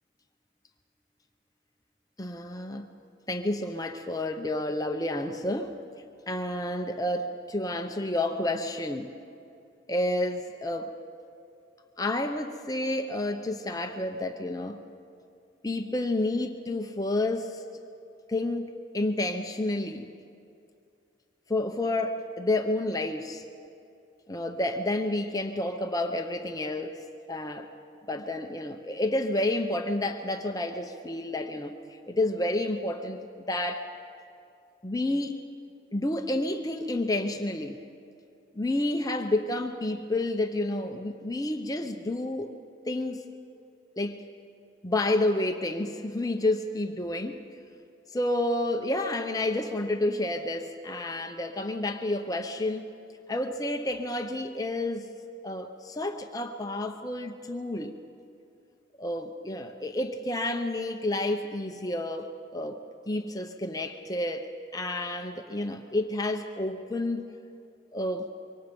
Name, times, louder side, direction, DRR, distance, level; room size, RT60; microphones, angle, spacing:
voice 1, 2.2-2.9 3.3-5.7 6.3-9.1 9.9-10.9 12.0-14.8 15.6-17.6 18.3-20.1 21.5-23.4 24.3-27.7 28.1-33.9 34.8-35.4 35.9-37.8 38.5-42.5 42.9-43.2 44.0-44.2 44.8-47.4 48.1-52.9 53.3-55.1 55.4-58.0 59.0-67.3 67.9-68.3, left 1 dB, 20° left, 5 dB, 0.7 m, -30 dB
25.5 x 24.0 x 5.3 m, 2.6 s
head